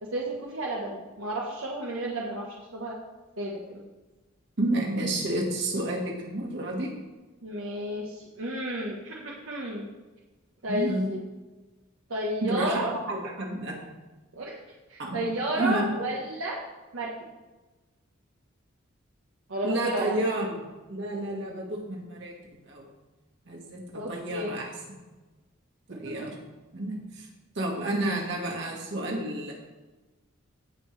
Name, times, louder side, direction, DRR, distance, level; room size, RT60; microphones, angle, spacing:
voice 1, 0.0-2.5 2.7-3.0 3.4-3.8 7.4-9.9 10.6-11.2 12.1-12.9 14.3-14.6 14.9-16.6 16.9-17.3 19.5-20.2 23.9-24.6, right 1 dB, 80° right, -2 dB, 1.2 m, -32 dB
voice 2, 4.6-7.0 10.7-11.1 12.4-12.8 13.1-13.8 15.0-15.2 15.5-15.9 19.6-20.6 20.9-22.3 22.6-22.9 23.5-23.8 24.1-24.7 25.9-26.3 26.7-27.3 27.6-29.5, right 1 dB, 60° right, -1 dB, 2.0 m, -30 dB
16.5 x 5.6 x 3.3 m, 1.2 s
head